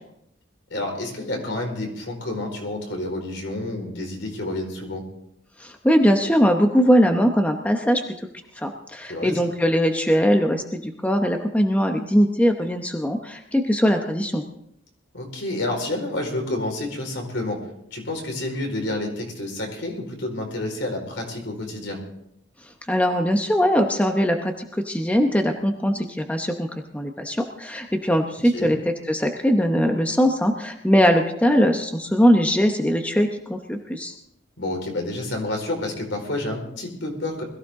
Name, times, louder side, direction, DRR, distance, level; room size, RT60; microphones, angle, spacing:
voice 1, 0.7-5.0 9.1-9.3 15.1-17.6 17.9-22.0 28.5-28.7 34.6-37.4, left 1 dB, 70° left, 1 dB, 4.7 m, -29 dB
voice 2, 5.6-8.0 8.6-14.4 22.9-34.1, equal, 5° left, 4 dB, 0.9 m, -21 dB
21.5 x 15.0 x 3.7 m, 0.75 s
head